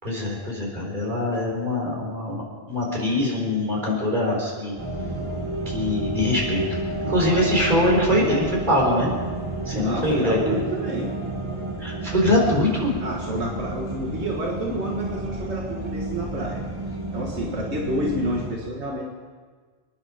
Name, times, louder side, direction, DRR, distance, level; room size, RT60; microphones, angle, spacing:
voice 1, 0.0-2.4 2.7-4.7 5.7-6.6 7.0-9.1 9.7-10.6 11.8-12.9, left 1 dB, 45° right, -3 dB, 4.5 m, -23 dB
sound 1, 4.8-18.6, right 2 dB, 25° right, 2.1 m, -31 dB
voice 2, 9.7-11.1 13.0-16.6 17.1-19.1, right 1 dB, 85° right, -1 dB, 2.0 m, -29 dB
26.5 x 10.5 x 5.1 m, 1.5 s
omnidirectional pair, 1.1 m